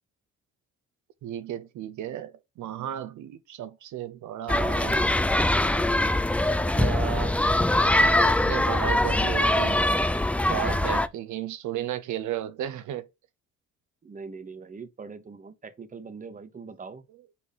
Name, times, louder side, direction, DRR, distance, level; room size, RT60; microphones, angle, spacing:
voice 1, 1.2-5.1 5.9-6.0 6.7-7.6 8.2-9.8 10.5-13.1 17.1-17.2, right 10 dB, 75° right, 0.6 m, -34 dB
sound 1, 4.5-11.1, left 1 dB, 5° left, 0.3 m, -23 dB
voice 2, 10.5-11.0 14.0-17.0, right 5 dB, 25° right, 0.9 m, -40 dB
4.8 x 4.2 x 5.4 m
cardioid pair, 90°, 30 cm